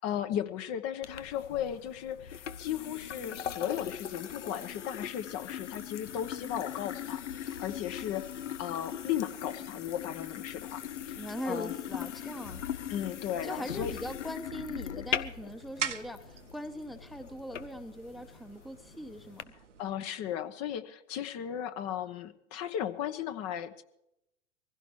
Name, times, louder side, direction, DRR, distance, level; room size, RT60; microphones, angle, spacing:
voice 1, 0.0-11.7 12.9-13.9 19.8-23.8, left 10 dB, 45° left, 9 dB, 1.1 m, -36 dB
sound 1, 1.0-19.4, left 9 dB, 75° left, 0.8 m, -40 dB
voice 2, 11.2-12.6 13.4-19.5, equal, ahead, 9 dB, 0.9 m, -41 dB
sound 2, 14.9-19.9, right 8 dB, 80° right, 1.1 m, -43 dB
24.5 x 16.0 x 3.2 m, 0.83 s
figure-of-eight pair, 80°, 36 cm